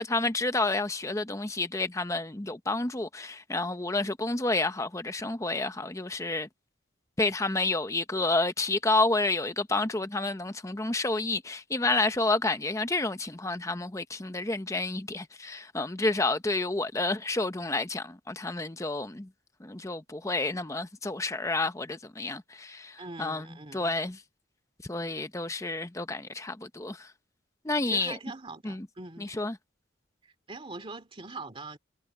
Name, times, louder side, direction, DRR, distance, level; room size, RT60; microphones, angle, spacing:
voice 1, 0.0-6.5 7.2-19.3 19.6-23.5 23.7-24.2 24.9-27.1 27.6-28.2 28.6-28.9 29.4-29.5, left 2 dB, 15° left, 0.8 m, -29 dB
voice 2, 23.0-23.9 27.9-29.3 30.2-31.8, right 3 dB, 25° right, 2.4 m, -42 dB
head